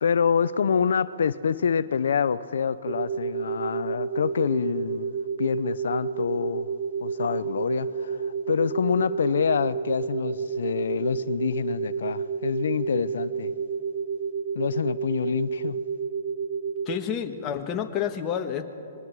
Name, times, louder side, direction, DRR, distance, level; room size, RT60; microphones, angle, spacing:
voice 1, 0.0-6.7 7.0-13.5 14.5-15.8, left 6 dB, 75° left, 16 dB, 0.6 m, -26 dB
sound 1, 2.9-17.0, right 6 dB, 50° right, 0.8 m, -30 dB
voice 2, 16.8-18.6, left 8 dB, 25° left, 5 dB, 1.4 m, -29 dB
25.0 x 21.5 x 4.7 m, 2.7 s
hypercardioid pair, 140°, 0 cm